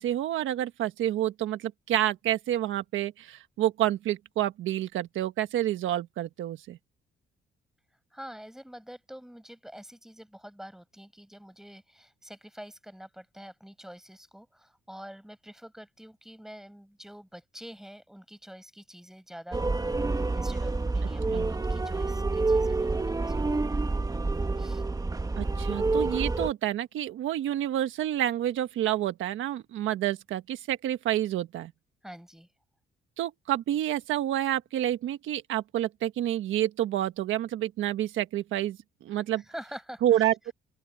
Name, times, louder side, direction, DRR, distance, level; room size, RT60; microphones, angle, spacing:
voice 1, 0.0-6.8 21.3-21.5 25.4-31.7 33.2-39.4 40.0-40.5, right 12 dB, 80° right, 1.4 m, -29 dB
voice 2, 8.1-19.8 20.3-23.5 24.6-24.9 32.0-32.5 39.1-40.5, equal, ahead, 5.5 m, -46 dB
sound 1, 19.5-26.5, right 3 dB, 20° right, 1.4 m, -28 dB
open air
cardioid pair, 90°, 20 cm